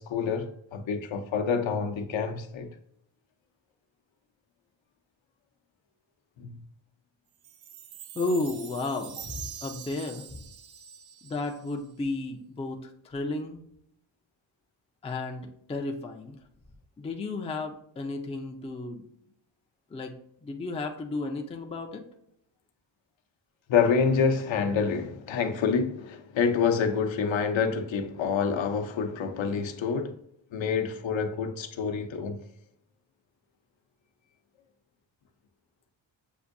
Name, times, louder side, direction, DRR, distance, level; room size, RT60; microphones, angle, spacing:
voice 1, 0.0-2.7 6.4-6.6 23.7-30.1 30.5-32.5, left 6 dB, 75° left, 0.7 m, -27 dB
Chime, 7.4-11.9, right 9 dB, 75° right, 0.6 m, -44 dB
voice 2, 8.1-10.4 11.2-13.6 15.0-16.4 17.0-19.0 19.9-20.1 20.4-22.0, left 2 dB, 15° left, 0.4 m, -33 dB
7.0 x 2.6 x 2.5 m
wide cardioid pair, 175°, 47 cm